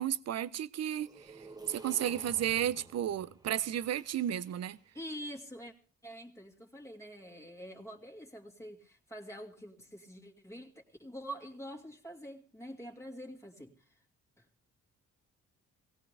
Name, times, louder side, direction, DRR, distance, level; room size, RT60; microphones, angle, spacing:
voice 1, 0.0-1.3 1.7-4.8, right 11 dB, 55° right, 0.8 m, -33 dB
sound 1, 0.9-4.9, right 2 dB, 15° right, 1.7 m, -52 dB
voice 2, 4.9-5.7 6.0-13.9 14.4-14.5, equal, 10° left, 2.5 m, -46 dB
18.5 x 17.0 x 3.4 m
cardioid pair, 90°, 30 cm